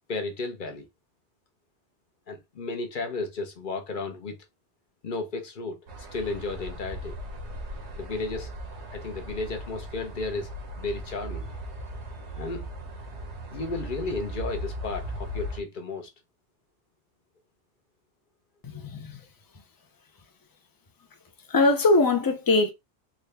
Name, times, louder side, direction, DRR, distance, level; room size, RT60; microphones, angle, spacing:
voice 1, 0.1-0.9 2.3-4.4 5.0-5.8 6.1-7.1 8.0-8.5 8.9-10.5 10.8-11.5 12.4-12.7 13.5-16.1, left 3 dB, 50° left, 0.9 m, -33 dB
sound 1, 5.9-15.6, equal, 75° right, 1.3 m, -38 dB
voice 2, 18.6-19.1 21.5-22.7, left 2 dB, 30° left, 0.4 m, -21 dB
3.7 x 2.3 x 3.3 m
omnidirectional pair, 1.2 m